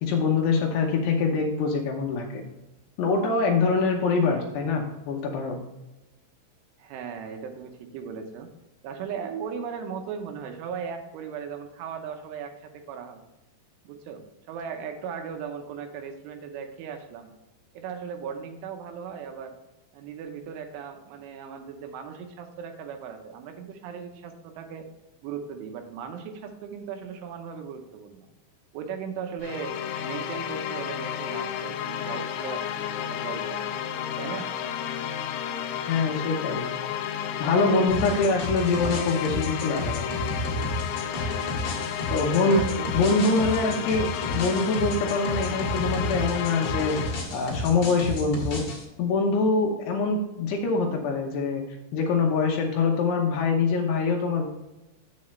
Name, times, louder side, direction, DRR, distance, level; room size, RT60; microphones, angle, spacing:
voice 1, 0.0-2.4 3.0-5.6 35.9-36.7 37.4-40.1 42.1-42.7 42.9-48.6 49.0-51.6 51.9-54.5, left 4 dB, 75° left, 0 dB, 2.7 m, -24 dB
voice 2, 6.8-8.5 8.8-13.2 13.8-17.3 17.7-19.6 19.9-24.9 25.2-28.3 28.7-29.8 30.0-33.7 34.2-34.5 41.0-41.6 42.2-42.9, right 7 dB, 80° right, 5 dB, 3.3 m, -37 dB
sound 1, 29.4-47.4, left 9 dB, 90° left, 2.4 m, -32 dB
sound 2, 37.9-48.8, left 1 dB, 45° left, 2.6 m, -32 dB
8.3 x 7.4 x 3.2 m, 1.0 s
omnidirectional pair, 5.7 m